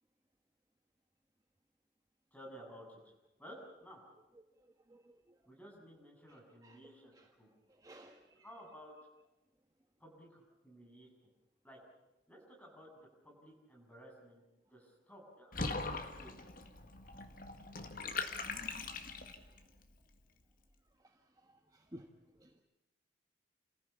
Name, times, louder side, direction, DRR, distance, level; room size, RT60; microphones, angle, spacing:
voice 1, 2.3-3.1 3.4-4.0 5.5-7.1 7.4-7.5 8.4-8.9 10.0-11.1 11.6-11.8 12.3-13.0 13.2-14.4 14.7-16.4, equal, 10° left, -1 dB, 7.6 m, -55 dB
voice 2, 7.8-8.4 21.7-22.1 22.4-22.5, right 1 dB, 20° right, 4 dB, 1.3 m, -54 dB
Water / Bathtub (filling or washing), 15.5-19.6, left 4 dB, 50° left, 1.9 m, -41 dB
29.0 x 15.0 x 8.4 m, 1.0 s
head